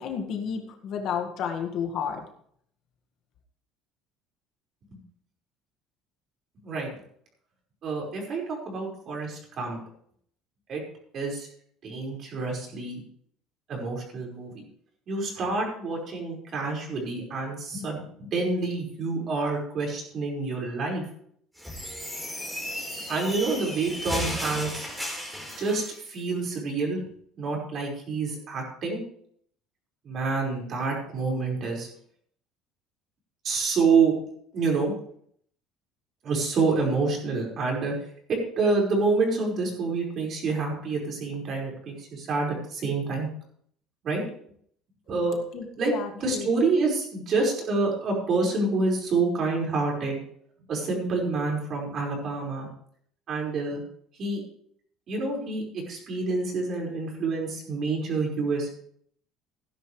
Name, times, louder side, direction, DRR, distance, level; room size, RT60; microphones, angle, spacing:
voice 1, 0.0-2.2 45.5-46.5, left 7 dB, 50° left, 5 dB, 1.9 m, -32 dB
voice 2, 7.8-9.8 10.7-10.8 11.1-11.5 11.8-13.0 13.7-14.5 15.1-21.0 23.1-24.9 25.6-27.0 27.4-29.0 30.1-31.9 33.4-34.1 34.5-34.9 36.2-37.9 38.3-43.3 44.0-44.2 45.1-45.4 45.8-45.9 46.2-50.2 50.7-52.7 53.3-53.8 54.2-54.4 55.1-58.7, right 3 dB, 40° right, -1 dB, 5.2 m, -27 dB
sound 1, 21.6-26.0, equal, 5° right, 4.3 m, -34 dB
16.5 x 11.0 x 3.3 m, 0.64 s
cardioid pair, 145°, 0 cm